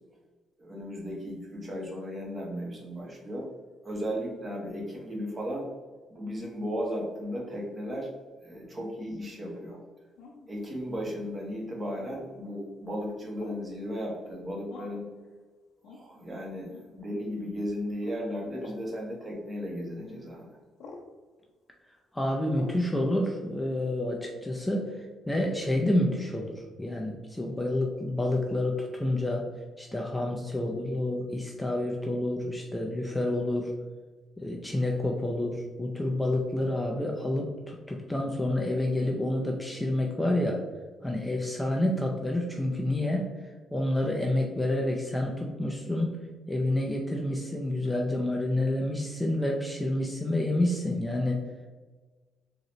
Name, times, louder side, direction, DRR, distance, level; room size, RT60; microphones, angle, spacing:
voice 1, 0.6-3.5 3.8-5.7 6.1-8.1 8.4-9.8 10.5-15.0 15.8-20.5, equal, 30° right, -2 dB, 1.2 m, -35 dB
sound 1, 10.2-10.5 11.9-12.3 13.4-13.7 14.7-15.1 15.8-16.0 16.7-16.9 18.0-18.2 18.6-18.8 20.0-20.2 20.8-21.1 22.5-22.8, left 3 dB, 80° left, 0.6 m, -46 dB
voice 2, 22.1-29.4 29.8-33.7 34.4-40.6 41.0-43.3 43.7-46.2 46.5-51.4, left 1 dB, 5° left, 0 dB, 0.5 m, -29 dB
3.9 x 2.8 x 3.1 m, 1.3 s
cardioid pair, 90°, 0 cm